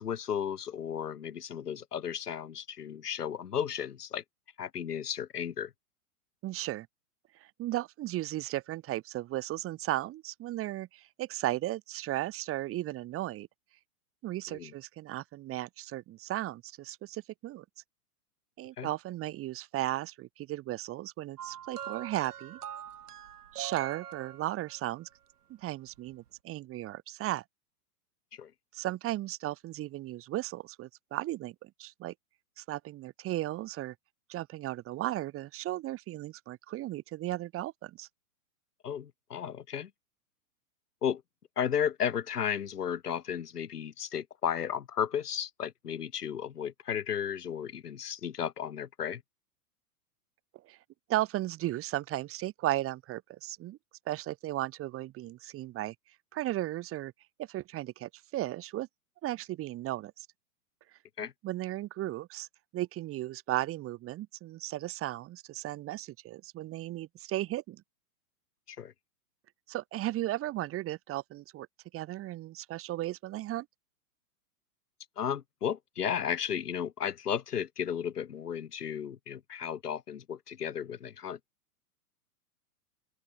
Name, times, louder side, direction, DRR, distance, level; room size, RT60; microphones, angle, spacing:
voice 1, 0.0-4.2 4.6-5.7 14.5-14.7 18.8-18.9 28.4-28.5 38.8-39.9 41.0-41.2 41.6-49.2 61.2-61.3 68.7-68.9 75.2-81.4, left 8 dB, 85° left, 4.5 m, -34 dB
voice 2, 6.4-6.9 7.4-13.5 14.2-17.6 18.6-22.6 23.5-25.1 25.5-27.4 28.7-32.1 32.6-33.9 34.3-38.1 50.6-50.8 51.1-53.8 54.1-55.9 56.3-57.1 57.4-58.9 59.2-60.3 61.2-62.5 62.7-67.8 69.7-71.7 71.9-73.7, right 15 dB, 30° right, 4.7 m, -35 dB
sound 1, 21.4-24.9 26.0-26.1, right 9 dB, 80° right, 4.5 m, -43 dB
open air
hypercardioid pair, 135°, 45 cm